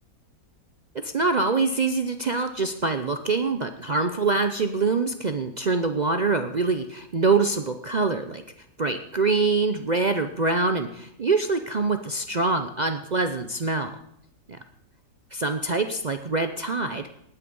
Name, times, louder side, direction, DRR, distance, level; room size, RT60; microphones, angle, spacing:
voice 1, 1.0-8.4 8.8-14.0 14.5-14.6 15.3-17.3, right 3 dB, 70° right, 7 dB, 0.4 m, -25 dB
18.5 x 9.7 x 5.4 m, 0.74 s
omnidirectional pair, 1.9 m